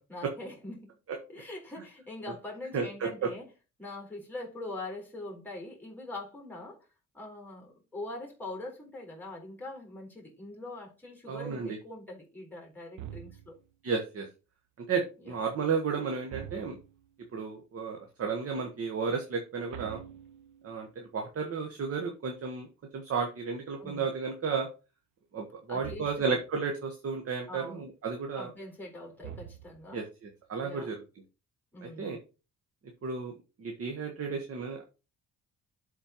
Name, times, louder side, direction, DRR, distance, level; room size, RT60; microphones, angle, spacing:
voice 1, 0.1-0.9 1.3-3.5 3.8-6.9 7.1-13.5 15.2-15.4 23.8-24.1 25.7-26.4 27.5-27.9 28.3-30.0 30.6-30.9 31.7-32.2, left 2 dB, 5° left, 4.0 m, -43 dB
voice 2, 2.7-3.1 11.3-11.8 13.8-14.3 14.9-16.8 17.3-20.0 20.6-22.7 22.9-24.7 25.3-28.5 29.9-31.0 31.8-32.2 33.0-33.3 33.6-34.8, right 5 dB, 50° right, 1.3 m, -33 dB
sound 1, 13.0-13.7 16.3-17.1 19.7-20.9 25.8-26.5 29.2-30.0, right 11 dB, 80° right, 0.8 m, -45 dB
11.5 x 4.4 x 2.9 m
cardioid pair, 90°, 30 cm